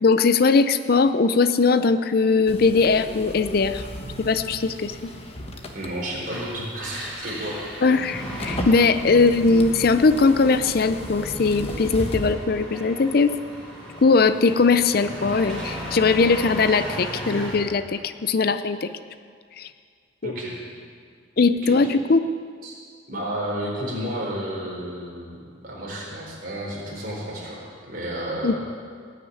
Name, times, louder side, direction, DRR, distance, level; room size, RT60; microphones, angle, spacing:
voice 1, 0.0-3.8 4.2-5.0 7.8-13.3 14.0-18.9 19.6-19.7 20.2-20.3 21.4-22.2 28.4-28.6, left 4 dB, 50° left, 12 dB, 0.5 m, -20 dB
sound 1, 2.5-12.3, equal, 30° left, 1.2 m, -35 dB
voice 2, 5.7-7.6 20.2-20.6 21.6-21.8 22.6-22.7 23.1-25.4 25.6-28.6, right 1 dB, 45° right, -4 dB, 4.1 m, -31 dB
Engine, 6.2-17.7, equal, 5° left, 4.7 m, -36 dB
18.0 x 6.7 x 9.5 m, 2.1 s
head